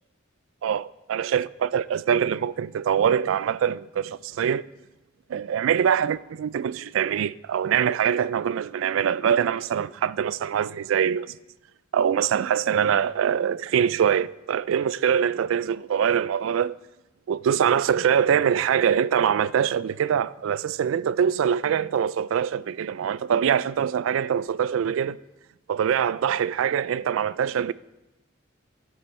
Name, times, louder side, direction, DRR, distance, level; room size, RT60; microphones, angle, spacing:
voice 1, 0.6-4.7 5.3-11.3 11.9-16.8 17.3-25.2 25.7-27.7, right 8 dB, 80° right, 0.3 m, -24 dB
12.0 x 7.9 x 4.3 m
head